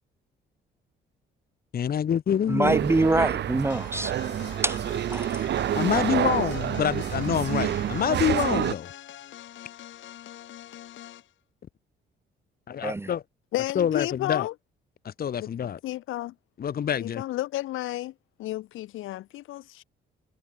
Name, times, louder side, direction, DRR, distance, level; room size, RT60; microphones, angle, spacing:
voice 1, 1.7-2.7 5.7-8.9 12.8-13.2 13.7-14.5 15.0-15.8 16.6-17.2, left 8 dB, 50° left, 1.1 m, -26 dB
voice 2, 2.5-4.1 4.6-4.8 5.1-5.4 12.8-13.0, right 2 dB, 10° right, 0.5 m, -24 dB
sound 1, 2.6-8.7, right 11 dB, 60° right, 0.9 m, -28 dB
sound 2, 3.7-11.3, left 12 dB, 75° left, 2.0 m, -44 dB
voice 3, 13.5-14.5 15.4-15.5 15.8-16.3 17.0-18.1 18.4-19.8, left 15 dB, 90° left, 3.3 m, -32 dB
cardioid pair, 90°, 20 cm